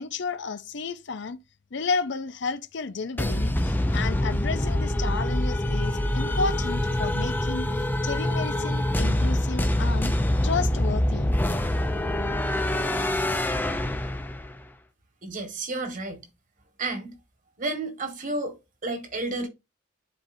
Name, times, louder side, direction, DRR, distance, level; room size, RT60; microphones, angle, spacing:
voice 1, 0.0-1.4 1.7-3.5 3.9-7.7 8.0-10.2 10.4-11.3, left 4 dB, 65° left, 0.6 m, -32 dB
sound 1, 3.2-14.6, left 1 dB, 10° left, 0.5 m, -25 dB
voice 2, 15.2-16.2 16.8-17.1 17.6-19.5, right 2 dB, 45° right, 1.6 m, -31 dB
10.5 x 4.2 x 2.6 m
head